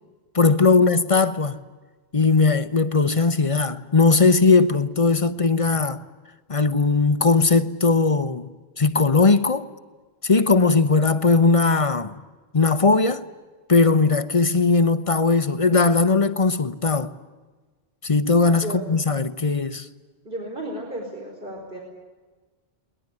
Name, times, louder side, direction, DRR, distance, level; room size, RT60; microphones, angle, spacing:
voice 1, 0.3-1.6 2.1-6.0 6.5-8.5 8.8-9.7 10.2-12.1 12.5-13.2 13.7-17.1 18.0-19.9, left 4 dB, 35° left, 0.9 m, -19 dB
voice 2, 20.2-21.8, equal, 55° right, 4.9 m, -33 dB
21.5 x 20.0 x 9.9 m
omnidirectional pair, 1.1 m